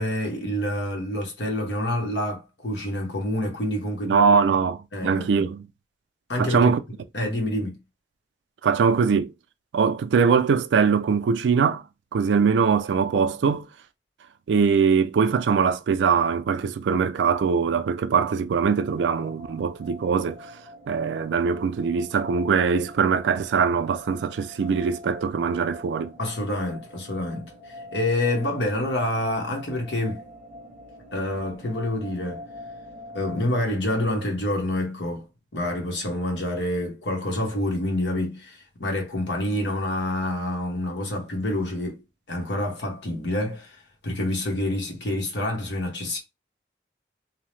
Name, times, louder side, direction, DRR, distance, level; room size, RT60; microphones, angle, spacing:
voice 1, 0.0-4.3 4.9-5.5 6.3-6.7 7.1-7.8 26.2-27.5 27.9-30.2 31.1-32.4 33.1-35.3 35.5-42.0 42.3-43.8 44.0-46.2, left 1 dB, 85° left, 1.0 m, -27 dB
voice 2, 4.0-5.7 6.4-6.8 8.6-9.3 9.7-11.8 12.1-13.7 14.5-20.5 20.9-26.1, right 6 dB, 85° right, 0.3 m, -22 dB
sound 1, 18.8-33.6, left 1 dB, ahead, 0.7 m, -44 dB
2.7 x 2.0 x 3.0 m
head